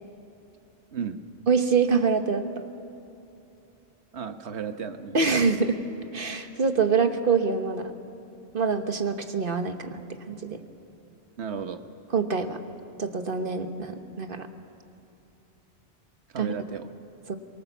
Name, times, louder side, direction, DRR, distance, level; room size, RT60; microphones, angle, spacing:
voice 1, 1.5-2.5 5.1-5.8 6.1-7.9 8.5-10.0 10.3-10.6 12.1-12.6 13.0-14.5 16.4-16.5 17.3-17.4, right 5 dB, 50° right, 7 dB, 1.4 m, -25 dB
voice 2, 4.1-5.2 11.4-11.8 16.3-16.9, right 6 dB, 70° right, 8 dB, 1.4 m, -34 dB
24.0 x 23.0 x 7.1 m, 2.8 s
omnidirectional pair, 1.2 m